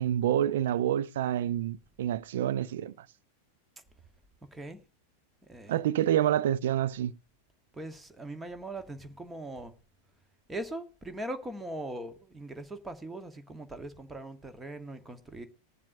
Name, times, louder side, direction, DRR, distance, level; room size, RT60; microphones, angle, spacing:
voice 1, 0.0-3.1 5.7-7.1, right 11 dB, 55° right, 0.4 m, -28 dB
voice 2, 4.4-4.8 5.4-6.0 7.7-9.7 10.5-15.5, right 1 dB, 10° right, 1.2 m, -40 dB
20.5 x 7.3 x 2.7 m
figure-of-eight pair, 90°, 0 cm